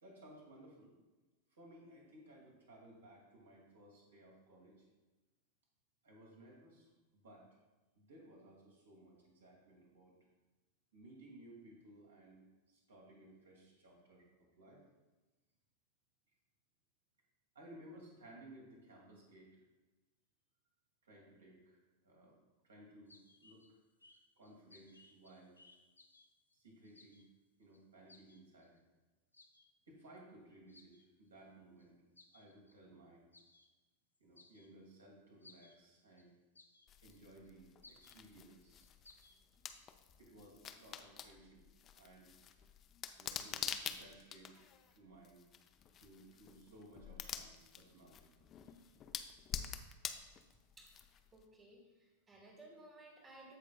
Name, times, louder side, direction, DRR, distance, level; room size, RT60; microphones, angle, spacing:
voice 1, 0.0-0.9 1.5-4.9 6.0-7.5 8.0-10.1 10.9-14.8 17.5-19.5 21.0-21.8 22.0-22.4 22.6-23.8 24.4-25.6 26.5-27.2 27.6-28.7 29.9-32.0 32.3-33.2 34.2-36.3 37.0-38.8 40.2-41.6 42.0-42.3 43.2-45.4 46.0-48.2 48.7-48.9, right 1 dB, 70° right, -2 dB, 2.2 m, -59 dB
sound 1, 23.1-23.7 24.0-26.6 26.8-27.3 27.7-27.8 28.1-28.8 29.3-29.7 30.2-30.3 30.7-31.0 31.8-31.9 32.2-32.8 33.3-33.7 34.2-34.9 35.4-35.8 36.2-36.3 36.6-37.2 37.5-37.6 37.8-38.2 38.6-39.4, left 3 dB, 80° left, 0.6 m, -63 dB
sound 2, 36.9-51.4, left 8 dB, 30° left, 0.5 m, -48 dB
voice 2, 51.3-53.6, right 2 dB, 15° right, 0 dB, 1.4 m, -58 dB
15.0 x 5.0 x 2.3 m, 1.2 s
figure-of-eight pair, 90°, 0 cm